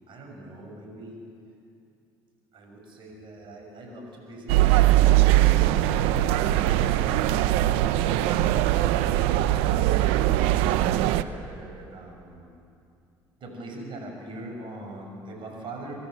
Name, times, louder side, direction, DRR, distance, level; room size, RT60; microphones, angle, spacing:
voice 1, 0.1-1.2 2.5-5.3 5.6-6.5 9.9-12.5 13.4-16.1, right 1 dB, 60° right, 2 dB, 6.5 m, -42 dB
sound 1, 4.5-11.2, right 14 dB, 85° right, 0.7 m, -21 dB
25.0 x 15.0 x 7.9 m, 2.5 s
supercardioid pair, 70°, 10 cm